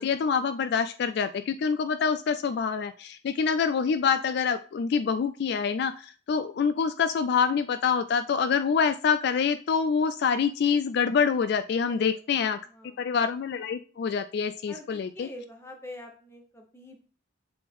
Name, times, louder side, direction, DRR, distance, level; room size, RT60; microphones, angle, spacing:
voice 1, 0.0-12.6 13.0-15.3, left 6 dB, 55° left, 11 dB, 0.3 m, -26 dB
voice 2, 11.9-13.1 14.7-17.1, left 1 dB, 15° left, 2 dB, 1.2 m, -46 dB
7.6 x 3.5 x 3.5 m, 0.39 s
head